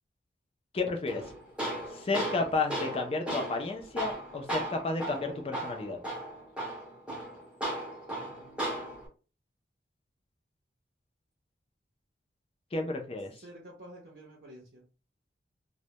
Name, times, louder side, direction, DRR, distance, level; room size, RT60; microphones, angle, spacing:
voice 1, 0.7-1.2 1.9-6.0 12.7-13.3, left 3 dB, 30° left, 0.4 m, -32 dB
Tools, 1.1-9.1, right 1 dB, 5° right, 0.6 m, -36 dB
voice 2, 8.1-9.0 13.4-14.9, right 1 dB, 55° right, 0.6 m, -51 dB
2.1 x 2.1 x 2.8 m
head